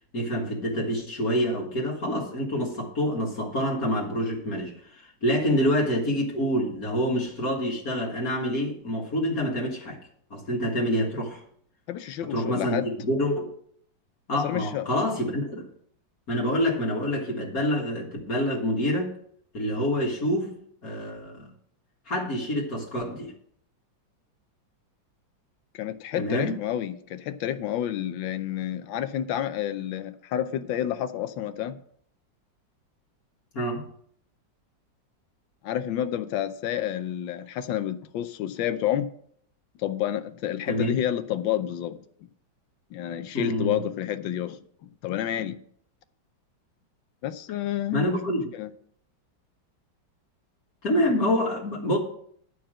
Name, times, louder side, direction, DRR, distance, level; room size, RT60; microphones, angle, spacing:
voice 1, 0.1-10.0 10.3-11.4 12.3-13.5 14.3-15.7 16.3-19.1 19.5-20.5 20.8-21.5 22.1-23.3 26.2-26.6 33.5-33.9 40.7-40.9 43.3-43.8 47.9-48.4 50.8-52.0, equal, 50° left, 2.1 m, -27 dB
voice 2, 11.9-12.9 14.4-14.9 25.7-31.8 35.6-39.1 39.8-42.0 42.9-45.6 47.2-48.2 48.5-48.7, left 11 dB, 80° left, 1.4 m, -29 dB
11.5 x 4.8 x 7.4 m
omnidirectional pair, 2.1 m